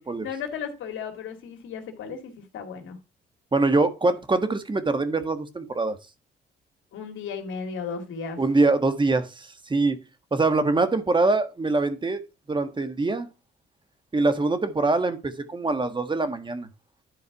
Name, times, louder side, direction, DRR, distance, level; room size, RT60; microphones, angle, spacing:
voice 1, 0.2-3.0 6.9-8.4, left 6 dB, 80° left, 2.2 m, -35 dB
voice 2, 3.5-6.0 8.4-10.0 10.3-12.2 12.5-13.3 14.1-16.7, right 3 dB, 25° right, 1.4 m, -24 dB
11.5 x 4.7 x 4.7 m
cardioid pair, 90°, 20 cm